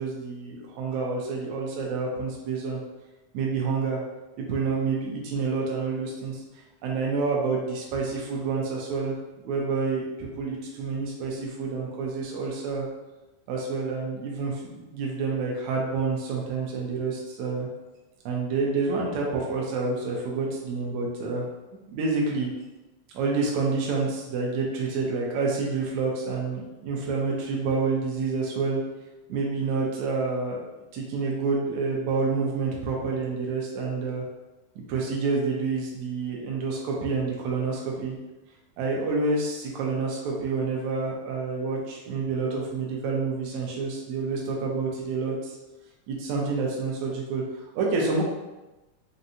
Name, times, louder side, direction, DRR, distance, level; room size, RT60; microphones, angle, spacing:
voice 1, 0.0-2.8 3.3-4.0 4.4-6.4 6.8-9.1 9.4-12.9 13.5-17.7 18.3-21.5 21.9-22.5 23.1-28.8 29.3-30.6 30.9-34.2 34.8-38.2 38.8-45.6 46.1-48.2, right 4 dB, 75° right, -2 dB, 1.9 m, -28 dB
5.2 x 2.6 x 2.7 m, 1.1 s
omnidirectional pair, 3.4 m